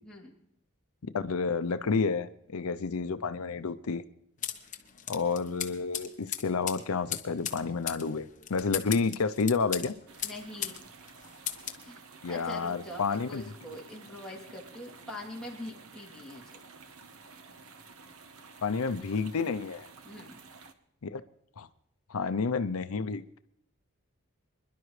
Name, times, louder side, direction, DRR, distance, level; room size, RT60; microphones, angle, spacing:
voice 1, 0.0-0.3 10.2-10.8 11.8-16.6 20.0-20.4, left 1 dB, 5° left, -4 dB, 3.0 m, -43 dB
voice 2, 1.1-4.0 5.1-9.9 12.2-13.4 18.6-19.9 21.0-21.2 21.6-21.7 22.1-23.4, left 4 dB, 85° left, 12 dB, 0.6 m, -30 dB
sound 1, 4.4-10.8 11.1-11.8, left 10 dB, 35° left, 1.0 m, -37 dB
sound 2, 10.1-20.7, right 4 dB, 75° right, 1.1 m, -52 dB
25.5 x 11.5 x 3.2 m, 0.75 s
head